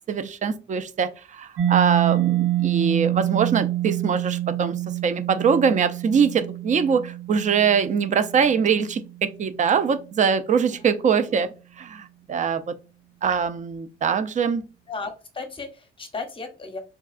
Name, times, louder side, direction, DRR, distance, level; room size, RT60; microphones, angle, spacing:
voice 1, 0.1-4.7 5.0-11.5 11.8-12.8 13.2-14.6, right 6 dB, 40° right, 0.4 m, -23 dB
Mallet percussion, 1.6-9.1, right 14 dB, 85° right, 0.9 m, -26 dB
voice 2, 10.7-11.5 14.9-16.8, left 4 dB, 25° left, 0.7 m, -36 dB
3.6 x 2.2 x 2.4 m
cardioid pair, 90°, 20 cm